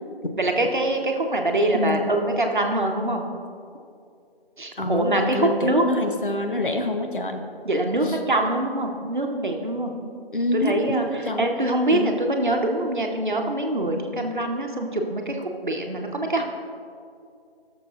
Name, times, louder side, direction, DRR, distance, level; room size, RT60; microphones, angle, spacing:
voice 1, 0.4-3.2 4.6-5.9 7.6-9.9 10.5-16.4, right 1 dB, 50° right, 2 dB, 1.0 m, -24 dB
voice 2, 4.8-7.4 8.0-8.2 10.3-11.5 11.9-12.1, left 1 dB, 55° left, 5 dB, 0.9 m, -26 dB
17.0 x 6.8 x 2.5 m, 2.4 s
figure-of-eight pair, 165°, 31 cm